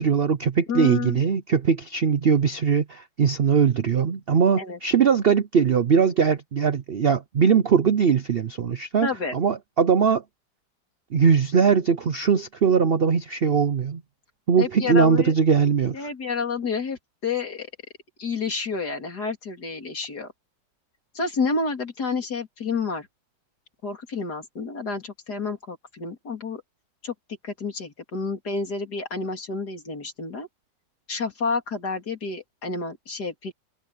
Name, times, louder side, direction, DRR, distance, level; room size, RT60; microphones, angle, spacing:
voice 1, 0.0-10.2 11.1-14.0 14.5-16.1, right 6 dB, 60° right, 0.6 m, -21 dB
voice 2, 0.7-1.2 4.6-4.8 9.0-9.4 14.6-15.3 15.9-17.7 18.2-20.3 21.1-23.1 23.8-26.6 27.0-27.1 27.4-30.5 31.1-33.5, left 4 dB, 60° left, 3.8 m, -29 dB
omnidirectional pair, 1.9 m